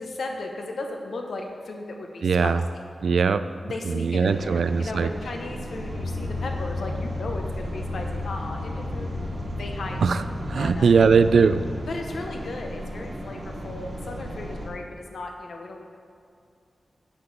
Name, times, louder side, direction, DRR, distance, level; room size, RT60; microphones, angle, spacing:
voice 1, 0.0-2.6 3.6-9.1 9.5-10.2 10.6-10.8 11.9-15.8, left 2 dB, 75° left, 3 dB, 0.9 m, -36 dB
voice 2, 2.2-2.6 3.0-3.5 3.9-5.1 10.0-10.2 10.5-11.6, right 5 dB, 75° right, 13 dB, 0.3 m, -20 dB
sound 1, 4.3-14.7, equal, 45° right, 1.3 m, -36 dB
sound 2, 5.8-11.8, left 2 dB, 30° left, 1.6 m, -33 dB
9.7 x 6.8 x 4.1 m, 2.4 s
wide cardioid pair, 155°, 0 cm